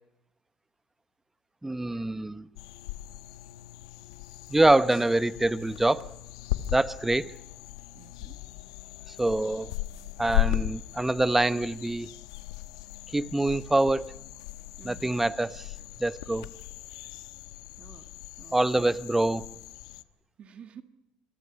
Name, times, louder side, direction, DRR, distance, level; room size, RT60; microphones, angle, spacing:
voice 1, 1.6-2.5 4.5-6.1 6.7-7.4 9.1-9.7 10.2-12.1 13.1-14.1 14.8-15.7 16.0-16.5 18.5-19.5, right 2 dB, 10° right, 0.9 m, -25 dB
sound 1, 2.6-20.0, left 16 dB, 85° left, 1.1 m, -37 dB
voice 2, 7.9-8.4 14.8-15.3 17.8-18.1 18.4-19.0 20.4-20.8, right 8 dB, 45° right, 1.7 m, -50 dB
27.5 x 22.5 x 5.9 m
supercardioid pair, 85°, 3 cm